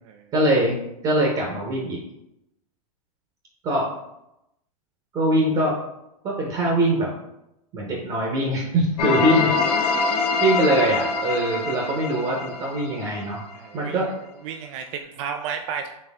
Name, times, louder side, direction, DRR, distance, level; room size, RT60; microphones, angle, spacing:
voice 1, 0.3-0.8 1.0-2.0 3.6-3.9 5.1-5.7 6.2-7.1 7.7-9.5 10.4-13.4 13.7-14.1, right 1 dB, 30° right, -2 dB, 1.1 m, -22 dB
sound 1, 9.0-13.8, left 4 dB, 80° left, 1.0 m, -25 dB
voice 2, 13.5-14.1 14.4-15.9, right 7 dB, 55° right, 5 dB, 0.5 m, -33 dB
4.4 x 3.2 x 3.6 m, 0.87 s
hypercardioid pair, 130°, 20 cm